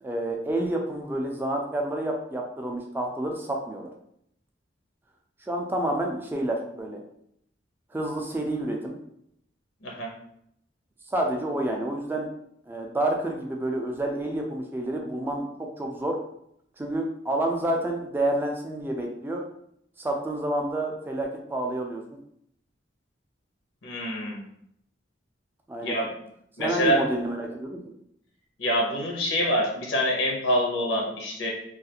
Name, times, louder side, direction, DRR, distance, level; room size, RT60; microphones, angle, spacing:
voice 1, 0.0-3.9 5.5-7.0 7.9-9.0 11.1-12.3 12.7-16.2 16.8-19.4 20.0-22.0 25.7-26.0 26.6-27.8, right 1 dB, 10° right, 1 dB, 0.3 m, -29 dB
voice 2, 23.8-24.5 25.8-26.1 26.6-27.1 28.6-31.5, equal, 85° left, -1 dB, 0.7 m, -26 dB
2.4 x 2.4 x 2.8 m, 0.73 s
head